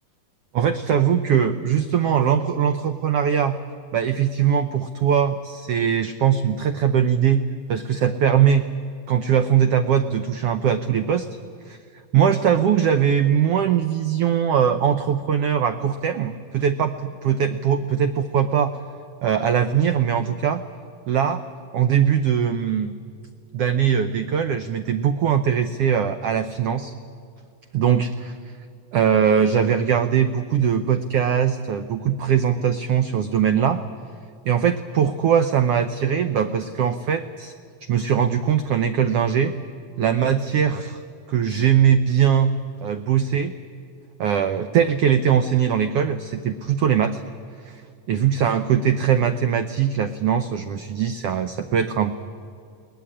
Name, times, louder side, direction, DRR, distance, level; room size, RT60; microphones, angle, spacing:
voice 1, 0.5-3.6 3.9-8.7 9.1-11.3 11.7-11.8 12.1-18.8 19.2-20.6 21.1-21.4 21.7-23.0 23.5-26.9 27.7-28.3 28.9-33.8 34.4-37.5 37.9-39.5 40.0-41.0 41.3-42.5 42.8-43.5 44.2-47.2 47.6-47.8 48.1-52.2, right 8 dB, 90° right, 9 dB, 1.3 m, -21 dB
21.5 x 18.5 x 9.9 m, 2.4 s
omnidirectional pair, 3.7 m